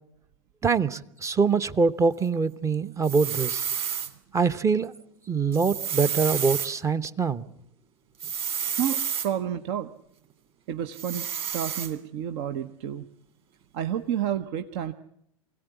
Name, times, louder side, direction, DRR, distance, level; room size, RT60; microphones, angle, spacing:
voice 1, 0.6-3.6 4.3-4.9 5.3-7.5, right 5 dB, 20° right, 13 dB, 0.8 m, -24 dB
sound 1, 3.0-4.1 5.5-6.7 8.2-9.3 10.9-11.9, right 8 dB, 35° right, 2.9 m, -30 dB
voice 2, 8.8-9.9 10.7-11.3 11.5-13.1 13.7-14.9, right 9 dB, 55° right, 9 dB, 0.9 m, -30 dB
24.0 x 17.0 x 8.2 m, 0.75 s
hypercardioid pair, 95°, 17 cm